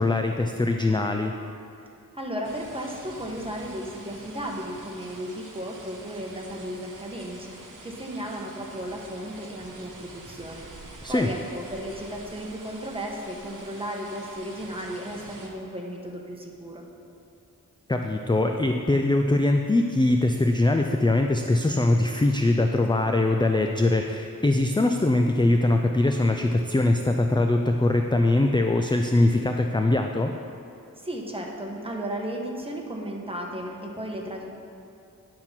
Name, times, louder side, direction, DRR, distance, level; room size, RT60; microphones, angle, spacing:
voice 1, 0.0-1.3 11.0-11.3 17.9-30.3, left 2 dB, 15° left, 4 dB, 0.4 m, -22 dB
voice 2, 2.1-10.7 11.1-16.9 31.0-34.5, equal, 15° right, -1 dB, 1.3 m, -35 dB
sound 1, 2.4-15.5, right 2 dB, 60° right, 1.2 m, -46 dB
10.0 x 4.5 x 5.9 m, 2.6 s
cardioid pair, 45°, 35 cm